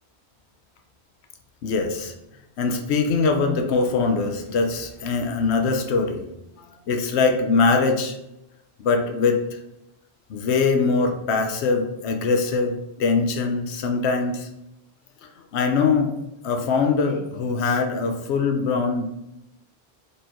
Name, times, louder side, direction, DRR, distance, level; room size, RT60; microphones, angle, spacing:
voice 1, 1.6-2.1 2.6-6.2 6.9-8.2 8.8-9.4 10.3-14.5 15.5-16.1 16.4-19.1, left 4 dB, 80° left, 4 dB, 0.9 m, -22 dB
4.3 x 3.3 x 2.8 m, 0.89 s
omnidirectional pair, 1.1 m